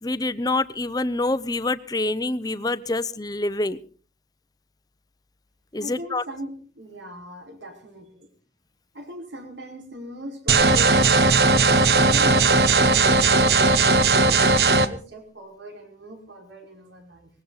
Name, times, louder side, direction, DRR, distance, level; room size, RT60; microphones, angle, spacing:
voice 1, 0.0-3.8 5.7-6.2, left 2 dB, 20° left, 15 dB, 0.7 m, -26 dB
voice 2, 5.8-8.3 8.9-17.3, equal, 85° right, 2 dB, 5.4 m, -40 dB
sound 1, 10.5-14.9, right 3 dB, 60° right, 1.1 m, -17 dB
20.0 x 16.5 x 4.1 m, 0.40 s
head